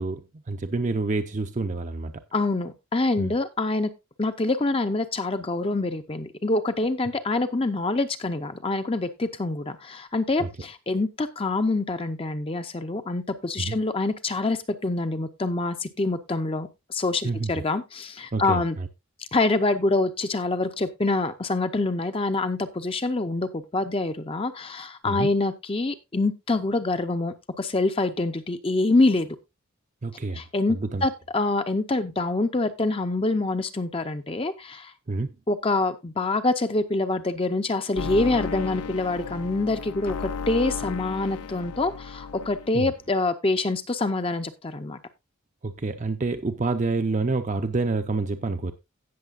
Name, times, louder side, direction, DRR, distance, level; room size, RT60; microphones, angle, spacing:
voice 1, 0.0-2.1 3.2-3.3 10.4-10.5 13.6-13.8 17.2-17.5 18.3-18.9 25.0-25.3 30.0-31.1 35.1-35.4 42.7-42.9 45.6-48.7, right 3 dB, 35° right, 0.5 m, -28 dB
voice 2, 2.3-3.9 4.2-18.8 19.3-29.3 30.3-34.9 35.5-45.0, left 2 dB, 25° left, 0.6 m, -26 dB
sound 1, 38.0-42.9, left 5 dB, 90° left, 0.6 m, -34 dB
17.0 x 6.5 x 2.4 m
head